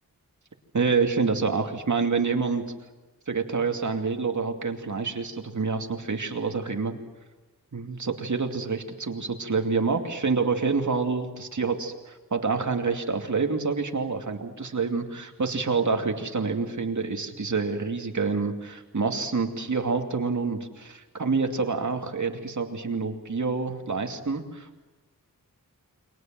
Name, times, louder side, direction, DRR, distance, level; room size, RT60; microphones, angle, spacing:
voice 1, 0.7-2.7 3.3-7.0 7.7-24.8, right 4 dB, 55° right, 4 dB, 2.5 m, -27 dB
29.5 x 24.0 x 7.7 m, 1.1 s
wide cardioid pair, 110°, 35 cm